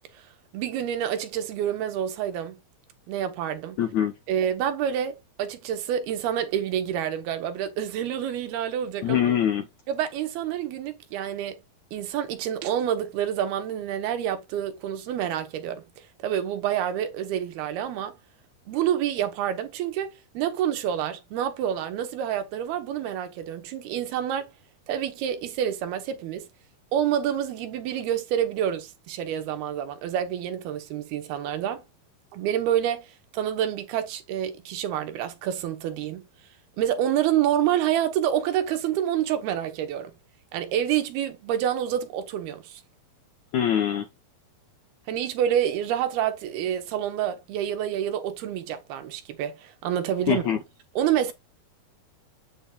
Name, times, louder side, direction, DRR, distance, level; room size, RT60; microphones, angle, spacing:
voice 1, 0.5-2.6 3.1-3.8 4.3-9.2 9.9-11.6 11.9-18.1 18.7-24.5 24.9-26.5 26.9-31.8 32.3-36.3 36.8-40.1 40.5-42.8 45.1-50.4 51.0-51.3, right 10 dB, 80° right, 3.1 m, -28 dB
voice 2, 3.8-4.1 9.0-9.7 43.5-44.1 50.3-50.6, left 10 dB, 75° left, 1.7 m, -23 dB
8.3 x 7.6 x 2.4 m
omnidirectional pair, 4.4 m